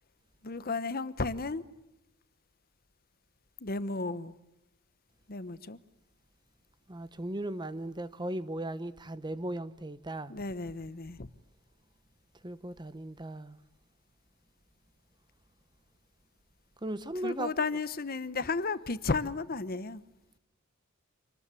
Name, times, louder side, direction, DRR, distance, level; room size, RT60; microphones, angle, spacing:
voice 1, 0.4-1.6 3.6-4.3 5.3-5.8 10.3-11.3 17.2-20.0, left 3 dB, 45° left, 1.0 m, -33 dB
voice 2, 6.9-10.3 12.4-13.6 16.8-17.5, right 1 dB, 20° right, 0.8 m, -37 dB
27.0 x 20.0 x 8.4 m
head